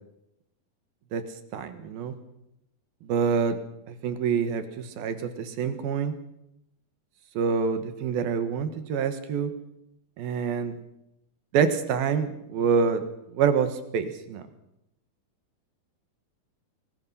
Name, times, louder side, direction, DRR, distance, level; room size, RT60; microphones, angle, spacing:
voice 1, 1.5-2.1 3.0-3.6 3.9-6.1 7.3-9.5 10.2-10.7 11.5-13.0 13.3-14.4, right 6 dB, 80° right, 10 dB, 3.3 m, -26 dB
23.0 x 20.0 x 5.6 m, 0.83 s
omnidirectional pair, 4.3 m